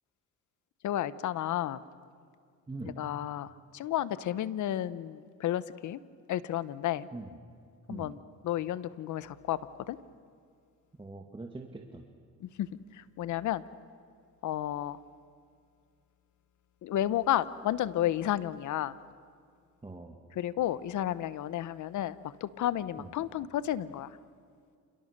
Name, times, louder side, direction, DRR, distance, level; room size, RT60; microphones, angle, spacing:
voice 1, 0.8-1.8 3.0-3.5 3.7-6.0 6.3-7.1 7.9-8.2 8.4-9.6 9.9-10.0 12.4-12.7 13.2-13.6 14.4-15.0 16.8-18.9 20.4-22.1 22.4-24.1, left 12 dB, 75° left, 15 dB, 1.1 m, -31 dB
voice 2, 2.7-3.0 7.1-7.4 7.9-8.2 11.0-12.0 19.8-20.2 23.0-23.1, right 2 dB, 15° right, 2 dB, 2.2 m, -42 dB
28.5 x 28.5 x 6.7 m, 2.2 s
cardioid pair, 90°, 30 cm